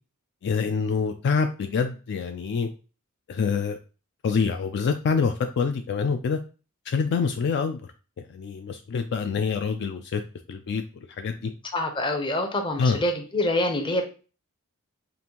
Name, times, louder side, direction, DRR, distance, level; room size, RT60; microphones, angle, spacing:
voice 1, 0.4-2.7 3.3-3.8 4.2-6.4 6.9-7.8 8.2-10.2 10.5-10.8 11.2-11.5 12.8-13.0, left 5 dB, 55° left, 7 dB, 0.3 m, -26 dB
voice 2, 11.7-14.1, left 1 dB, 20° left, 4 dB, 0.7 m, -26 dB
5.2 x 2.5 x 2.9 m, 0.35 s
head